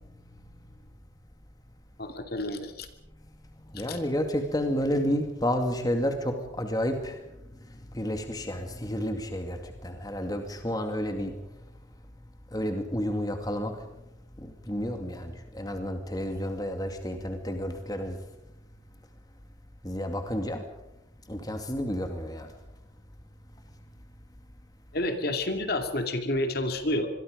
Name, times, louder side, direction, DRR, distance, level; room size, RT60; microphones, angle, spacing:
voice 1, 2.0-2.9 3.7-4.0 24.9-27.1, left 1 dB, 50° left, 6 dB, 2.6 m, -29 dB
voice 2, 3.6-11.6 12.5-13.9 14.4-18.2 19.8-20.7 21.3-22.5, equal, 20° left, 5 dB, 2.3 m, -31 dB
26.5 x 22.5 x 5.2 m, 0.85 s
head